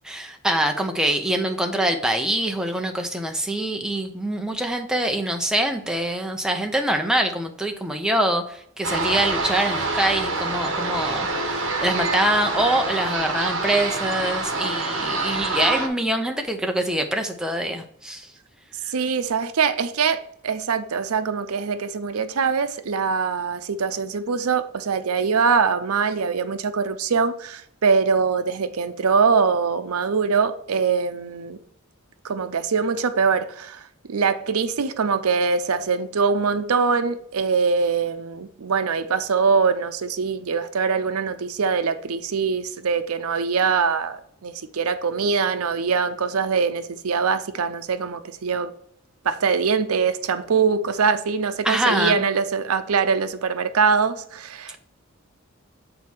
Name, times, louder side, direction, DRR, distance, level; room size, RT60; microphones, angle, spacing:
voice 1, 0.0-18.3 51.6-52.2, right 1 dB, 5° right, 0.7 m, -24 dB
sound 1, 8.8-15.9, right 3 dB, 60° right, 1.2 m, -26 dB
voice 2, 18.9-31.6 32.2-48.7 49.2-54.8, right 5 dB, 90° right, 0.6 m, -23 dB
7.7 x 4.2 x 4.6 m
head